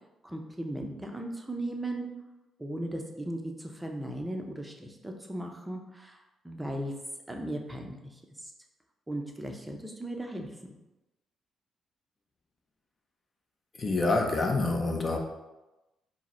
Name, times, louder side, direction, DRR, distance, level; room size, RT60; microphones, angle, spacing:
voice 1, 0.2-2.1 2.6-6.2 6.4-6.9 7.3-8.5 9.1-10.5, right 1 dB, 10° right, 2 dB, 0.6 m, -37 dB
voice 2, 13.8-15.2, left 2 dB, 35° left, 3 dB, 0.6 m, -27 dB
4.7 x 2.1 x 4.3 m, 1.0 s
cardioid pair, 90°, 0 cm